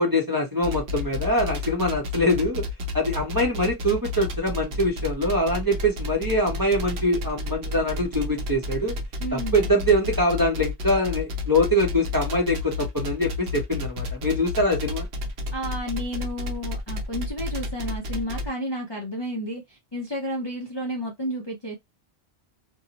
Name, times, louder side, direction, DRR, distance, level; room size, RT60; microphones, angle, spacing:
voice 1, 0.0-2.6 2.9-8.9 9.3-15.1, equal, 25° right, 0.6 m, -23 dB
sound 1, 0.6-18.5, left 3 dB, 75° right, 1.0 m, -31 dB
voice 2, 9.2-9.7 15.5-21.8, equal, 35° left, 0.5 m, -31 dB
2.6 x 2.0 x 2.7 m
omnidirectional pair, 1.1 m